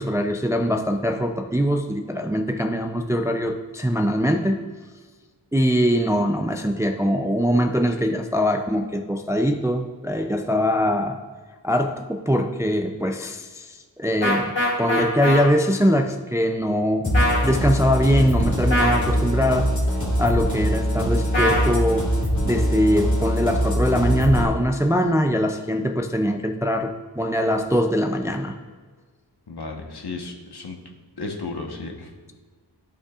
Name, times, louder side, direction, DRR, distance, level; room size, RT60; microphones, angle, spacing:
voice 1, 0.0-4.6 5.5-11.2 11.6-17.1 17.4-19.7 20.2-22.1 22.4-28.6, equal, 5° right, 5 dB, 0.4 m, -22 dB
sound 1, 14.2-15.4 17.1-17.5 18.7-19.0 21.3-21.7, left 1 dB, 85° left, 2.3 m, -21 dB
sound 2, 17.0-24.4, equal, 40° left, 2.3 m, -23 dB
voice 2, 29.5-30.8 31.2-32.1, left 3 dB, 65° left, 1 dB, 1.2 m, -33 dB
12.5 x 5.4 x 2.4 m, 1.5 s
wide cardioid pair, 95°, 43 cm